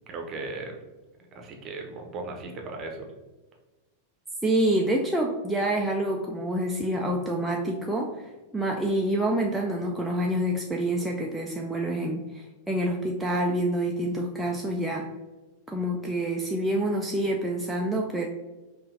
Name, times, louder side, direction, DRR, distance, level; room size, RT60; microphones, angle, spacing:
voice 1, 0.1-0.8 1.3-3.1, right 3 dB, 30° right, 2 dB, 0.8 m, -37 dB
voice 2, 4.4-15.1 15.7-18.3, right 1 dB, 5° right, -2 dB, 0.4 m, -27 dB
5.5 x 2.5 x 2.6 m, 1.2 s
figure-of-eight pair, 90°, 0 cm